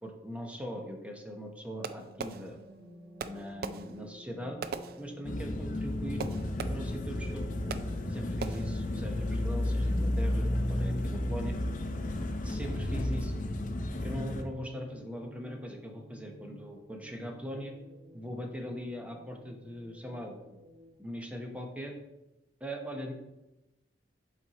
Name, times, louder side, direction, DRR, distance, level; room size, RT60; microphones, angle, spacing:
voice 1, 0.0-2.6 3.2-4.6 5.0-6.2 6.7-7.5 8.1-11.6 12.4-13.4 14.0-17.7 18.1-20.6 21.0-21.9 22.6-23.1, equal, 10° right, 2 dB, 0.9 m, -40 dB
sound 1, 1.8-21.0, equal, 35° right, 1.1 m, -53 dB
Fireworks, 1.8-2.9 3.2-5.6 6.2-7.1 7.7-8.1 8.4-8.9, right 5 dB, 55° right, 0.4 m, -41 dB
sound 2, 5.2-14.4, left 1 dB, 45° left, 0.5 m, -32 dB
7.6 x 4.3 x 4.1 m, 0.97 s
head